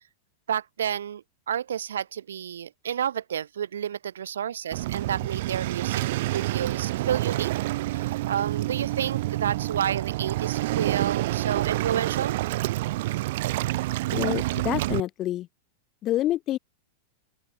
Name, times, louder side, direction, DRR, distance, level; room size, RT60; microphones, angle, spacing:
voice 1, 0.5-6.0 6.3-7.5 7.8-12.4, right 9 dB, 80° right, 0.5 m, -30 dB
Waves surf, 4.7-15.0, right 17 dB, 60° right, 1.0 m, -28 dB
voice 2, 14.1-15.5 16.0-16.6, left 14 dB, 35° left, 0.7 m, -27 dB
open air
hypercardioid pair, 105°, 0 cm